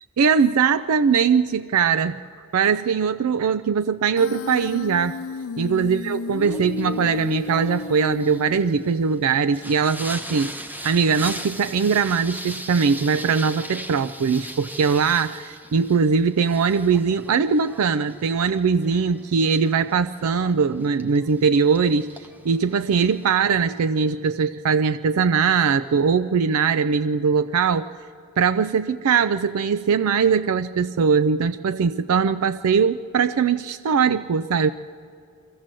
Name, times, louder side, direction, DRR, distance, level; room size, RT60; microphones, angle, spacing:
voice 1, 0.2-2.2 2.5-5.2 5.6-10.5 10.8-27.9 28.4-34.7, right 6 dB, 85° right, 12 dB, 0.4 m, -21 dB
Human voice, 4.2-9.1, left 5 dB, 70° left, 0.5 m, -32 dB
Singing, 6.4-23.4, right 1 dB, 10° right, 1.1 m, -39 dB
23.0 x 16.0 x 7.6 m, 2.6 s
head